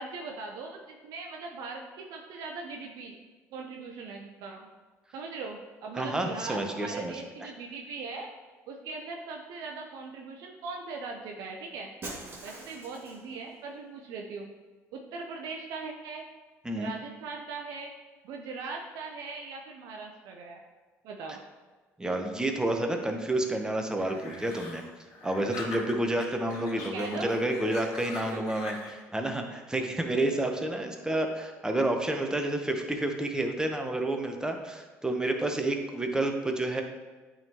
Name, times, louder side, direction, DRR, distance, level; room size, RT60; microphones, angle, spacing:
voice 1, 0.0-3.2 3.5-4.7 5.1-8.3 8.7-11.9 12.4-14.5 14.9-16.2 16.8-17.9 18.2-20.6 21.0-21.4 26.8-27.3 28.2-28.4, right 4 dB, 75° right, 2 dB, 0.6 m, -40 dB
voice 2, 5.9-7.5 16.6-16.9 22.0-24.8 25.2-36.8, right 1 dB, 10° right, 4 dB, 0.9 m, -30 dB
Shatter, 12.0-13.4, right 2 dB, 40° right, 1.7 m, -42 dB
sound 1, 24.0-26.2 26.5-29.0, left 3 dB, 75° left, 1.5 m, -43 dB
8.7 x 3.7 x 2.9 m, 1.3 s
supercardioid pair, 75°, 6 cm